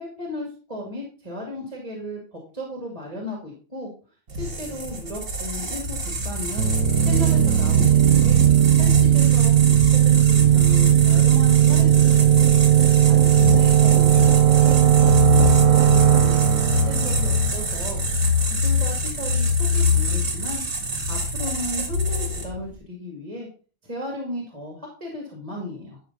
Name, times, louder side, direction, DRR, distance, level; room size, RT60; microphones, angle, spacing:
voice 1, 0.0-3.9 4.4-6.0 6.2-6.7 7.0-8.4 8.7-12.4 13.1-18.0 18.5-23.5 23.8-26.0, left 1 dB, 25° right, -1 dB, 2.3 m, -35 dB
sound 1, 4.3-22.7, left 3 dB, 45° right, 2.0 m, -25 dB
sound 2, 6.6-18.1, right 12 dB, 85° right, 1.1 m, -17 dB
11.5 x 5.6 x 4.0 m, 0.37 s
omnidirectional pair, 1.4 m